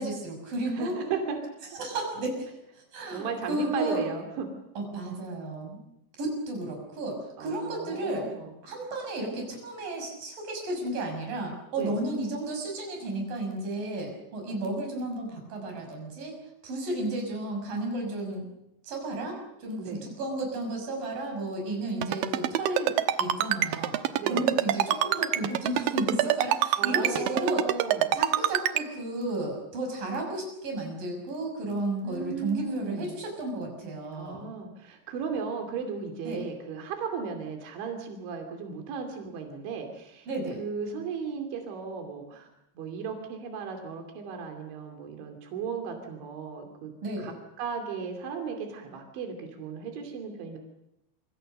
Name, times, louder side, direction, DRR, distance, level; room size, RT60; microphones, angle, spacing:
voice 1, 0.0-1.0 1.7-4.0 4.8-5.8 6.2-8.3 8.6-16.4 16.6-18.5 18.8-27.7 28.1-34.5 36.2-36.4 40.3-40.6 47.0-47.3, right 2 dB, 50° right, 2 dB, 7.7 m, -33 dB
voice 2, 0.7-1.4 3.1-4.5 7.4-8.5 11.8-12.0 19.8-20.1 24.2-24.6 26.8-28.2 32.0-33.1 34.1-40.3 40.6-42.5 42.8-46.9 47.2-50.6, right 6 dB, 90° right, 4 dB, 5.0 m, -36 dB
Ringtone, 22.0-28.8, right 12 dB, 70° right, 2.3 m, -25 dB
27.5 x 25.0 x 6.7 m, 0.85 s
omnidirectional pair, 5.1 m